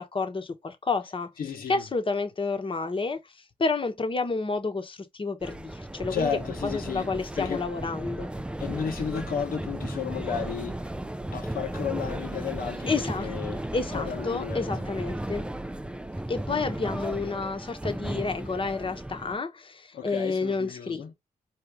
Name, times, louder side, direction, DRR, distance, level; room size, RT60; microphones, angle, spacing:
voice 1, 0.0-1.3 1.7-3.2 3.6-6.3 6.6-8.3 12.9-13.3 13.7-15.5 16.3-21.1, left 4 dB, 35° left, 1.0 m, -30 dB
voice 2, 1.4-1.8 6.1-7.7 8.6-10.8 11.3-13.6 13.9-14.8 19.9-21.1, left 7 dB, 85° left, 1.2 m, -33 dB
sound 1, 5.4-19.4, right 1 dB, 5° right, 0.4 m, -35 dB
4.3 x 2.9 x 3.5 m
cardioid pair, 70°, 15 cm